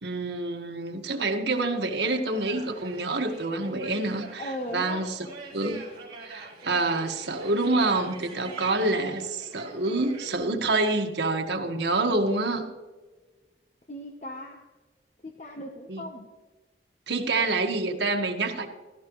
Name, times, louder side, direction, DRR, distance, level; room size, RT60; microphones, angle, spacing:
voice 1, 0.0-4.4 4.7-5.1 5.5-5.9 6.2-12.7 15.9-16.1 17.1-18.7, right 2 dB, 85° right, 3 dB, 1.6 m, -27 dB
sound 1, 2.1-10.4, right 3 dB, 25° right, 4.4 m, -45 dB
voice 2, 4.1-5.2 13.9-14.7 15.2-16.3, left 1 dB, 40° left, 3 dB, 1.0 m, -38 dB
16.0 x 14.0 x 3.1 m, 1.3 s
head